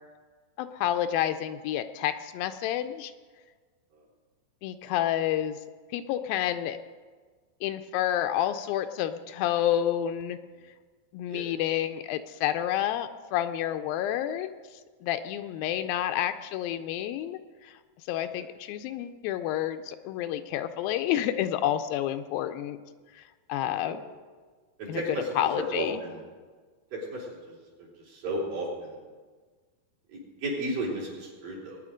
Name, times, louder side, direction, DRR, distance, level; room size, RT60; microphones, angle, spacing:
voice 1, 0.6-3.1 4.6-5.6 5.9-6.8 7.6-10.4 11.1-14.6 15.0-17.7 18.1-22.8 23.2-23.3 23.5-24.0 24.9-25.0 25.4-26.0, left 11 dB, 80° left, 9 dB, 2.3 m, -29 dB
voice 2, 24.8-26.2 26.9-29.0 30.4-31.8, right 1 dB, 65° right, -5 dB, 5.3 m, -34 dB
20.5 x 9.6 x 5.1 m, 1.5 s
omnidirectional pair, 4.3 m